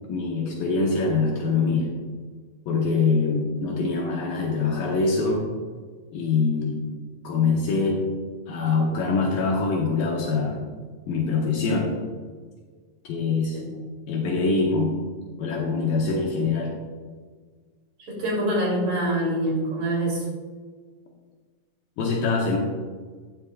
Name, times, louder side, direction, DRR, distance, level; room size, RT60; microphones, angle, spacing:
voice 1, 0.1-1.9 2.7-5.4 6.1-6.8 7.2-8.0 8.5-10.6 11.1-11.9 13.0-13.6 14.1-14.9 15.4-16.7 22.0-22.6, left 4 dB, 75° left, -2 dB, 2.7 m, -24 dB
voice 2, 18.1-20.2, right 1 dB, 55° right, -3 dB, 4.2 m, -25 dB
12.5 x 9.6 x 2.3 m, 1.5 s
omnidirectional pair, 4.3 m